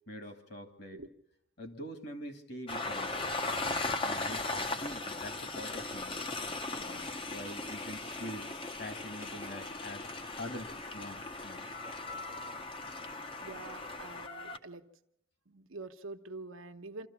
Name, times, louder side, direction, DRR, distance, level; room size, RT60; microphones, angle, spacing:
voice 1, 0.1-1.0 1.6-3.2 3.5-4.5 4.8-6.2 6.5-8.5 8.8-11.7, left 1 dB, 50° left, 6 dB, 2.0 m, -45 dB
Train, 2.7-14.6, left 3 dB, 25° left, 0.7 m, -38 dB
voice 2, 13.4-14.8 15.5-17.1, right 3 dB, 80° right, 8 dB, 1.1 m, -46 dB
25.5 x 14.0 x 7.1 m, 0.80 s
head